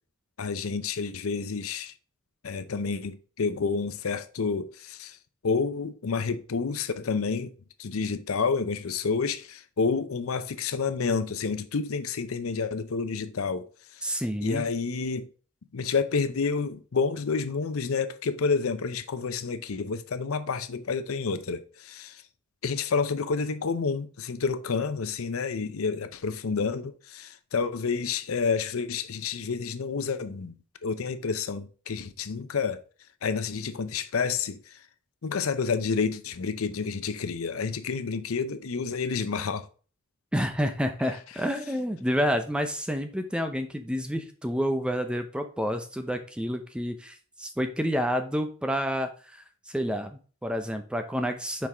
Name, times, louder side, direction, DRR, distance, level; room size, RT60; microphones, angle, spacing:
voice 1, 0.4-1.9 2.4-5.2 5.4-7.5 7.8-15.3 15.7-22.2 22.6-30.6 30.8-32.8 33.2-34.8 35.2-39.7, left 5 dB, 90° left, 0.6 m, -29 dB
voice 2, 14.0-14.6 40.3-51.7, equal, 5° right, 0.6 m, -29 dB
6.1 x 4.6 x 3.4 m
head